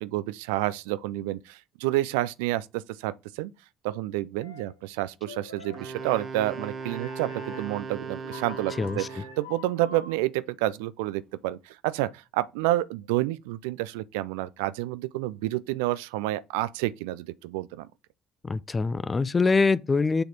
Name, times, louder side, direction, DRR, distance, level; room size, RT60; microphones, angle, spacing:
voice 1, 0.0-3.5 3.8-9.0 9.4-17.9, right 16 dB, 70° right, 0.3 m, -29 dB
sound 1, 4.4-4.8 5.3-10.1, left 2 dB, 80° left, 1.1 m, -45 dB
Wind instrument woodwind instrument, 5.7-9.5, right 5 dB, 45° right, 0.9 m, -38 dB
voice 2, 8.8-9.1 18.4-20.2, left 4 dB, 25° left, 0.4 m, -24 dB
6.7 x 4.0 x 4.5 m
figure-of-eight pair, 50°, 0 cm